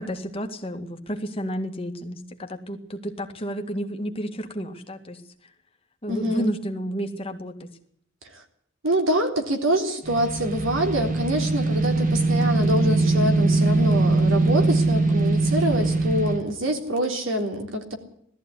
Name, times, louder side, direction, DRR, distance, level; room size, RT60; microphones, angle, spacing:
voice 1, 0.0-5.2 6.0-7.7, equal, 30° left, 4 dB, 2.0 m, -31 dB
voice 2, 6.1-6.5 8.8-17.9, right 1 dB, 85° right, 3 dB, 3.6 m, -25 dB
sound 1, 10.0-16.4, right 2 dB, 40° right, 2.1 m, -21 dB
19.0 x 14.0 x 9.8 m, 0.68 s
head